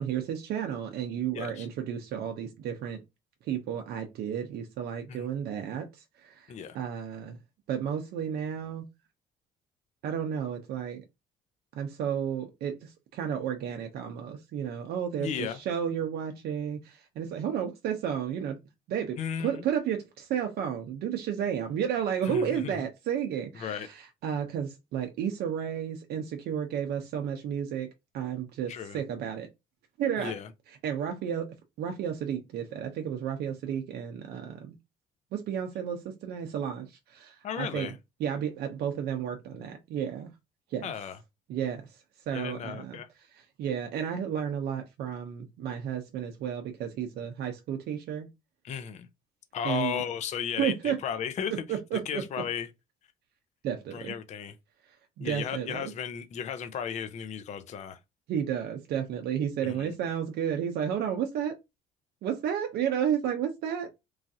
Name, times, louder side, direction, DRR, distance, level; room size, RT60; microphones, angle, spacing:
voice 1, 0.0-3.0 3.4-7.4 7.7-8.9 10.0-11.0 11.8-18.6 18.9-27.9 28.1-29.5 30.0-30.3 30.7-31.5 31.8-34.8 35.3-37.9 38.2-40.3 40.7-40.9 41.5-43.0 43.3-48.3 49.6-50.0 50.6-51.0 51.7-52.2 53.6-54.1 54.9-55.9 58.3-61.5 62.2-63.9, right 8 dB, 70° right, 0.6 m, -32 dB
voice 2, 1.3-1.7 5.1-5.2 6.5-6.8 15.2-15.6 19.2-19.6 22.3-22.7 23.6-23.9 28.7-29.0 30.2-30.5 37.4-37.9 40.8-41.2 42.3-43.1 48.6-49.1 49.5-51.5 52.1-52.7 53.9-54.5 55.2-58.0 59.6-59.9, left 8 dB, 45° left, 0.4 m, -35 dB
3.1 x 2.4 x 2.7 m
cardioid pair, 110°, 17 cm